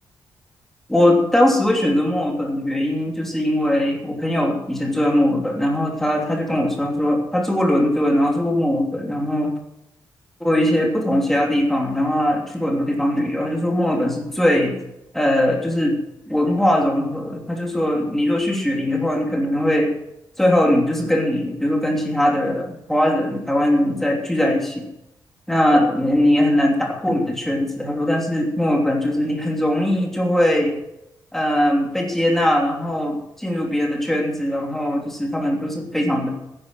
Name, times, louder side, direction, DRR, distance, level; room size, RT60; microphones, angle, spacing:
voice 1, 0.9-9.5 10.4-14.8 15.1-16.0 16.3-19.9 20.4-24.9 25.5-30.8 31.3-36.3, left 1 dB, 5° left, 0 dB, 2.9 m, -20 dB
15.5 x 10.0 x 6.3 m, 0.86 s
wide cardioid pair, 160°, 8 cm